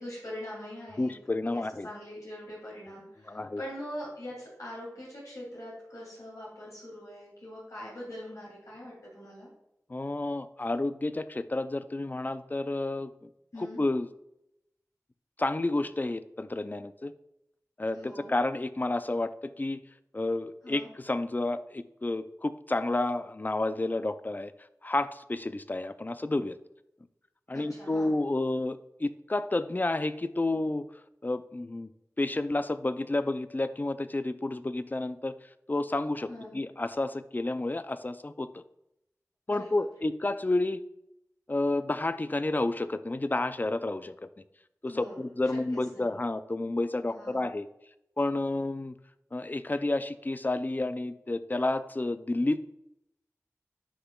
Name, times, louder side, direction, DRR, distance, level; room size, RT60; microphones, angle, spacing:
voice 1, 0.0-1.1 1.5-9.5 13.5-13.8 17.9-18.3 20.6-20.9 27.5-28.1 36.3-36.6 39.5-39.7 44.9-46.2 47.1-47.5, left 1 dB, 85° left, -6 dB, 2.8 m, -43 dB
voice 2, 1.0-1.9 3.3-3.6 9.9-13.3 13.6-14.1 15.4-17.1 17.8-19.8 20.1-24.5 24.8-26.6 27.5-30.9 31.2-31.9 32.2-35.3 35.7-36.3 36.5-38.6 39.5-40.8 41.5-44.1 44.8-47.7 48.2-48.9 49.3-52.6, left 2 dB, 30° left, 12 dB, 0.4 m, -30 dB
9.9 x 5.8 x 2.3 m, 0.83 s
wide cardioid pair, 55°, 6 cm